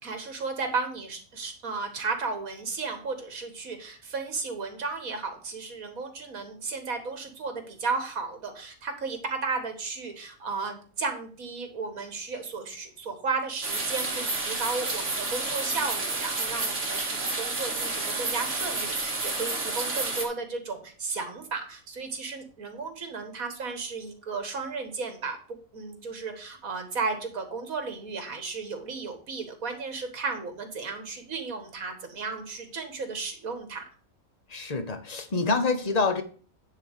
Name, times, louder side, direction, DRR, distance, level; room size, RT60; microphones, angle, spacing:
voice 1, 0.0-33.8, right 4 dB, 75° right, 6 dB, 2.1 m, -34 dB
sound 1, 13.6-20.3, right 3 dB, 55° right, 2.3 m, -30 dB
voice 2, 34.5-36.2, left 4 dB, 30° left, 8 dB, 1.0 m, -26 dB
9.7 x 4.0 x 6.5 m, 0.41 s
omnidirectional pair, 1.5 m